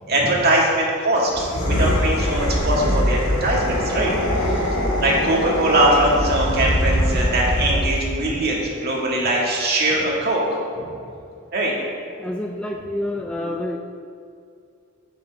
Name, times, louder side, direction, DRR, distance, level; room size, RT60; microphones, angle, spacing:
voice 1, 0.1-4.1 4.4-4.7 5.0-10.8 11.5-11.7, right 1 dB, 45° right, -3 dB, 2.2 m, -21 dB
sound 1, 1.3-8.1, equal, 85° left, 2.2 m, -22 dB
voice 2, 12.2-13.8, left 1 dB, 5° left, 1 dB, 0.4 m, -28 dB
10.5 x 9.0 x 3.6 m, 2.4 s
head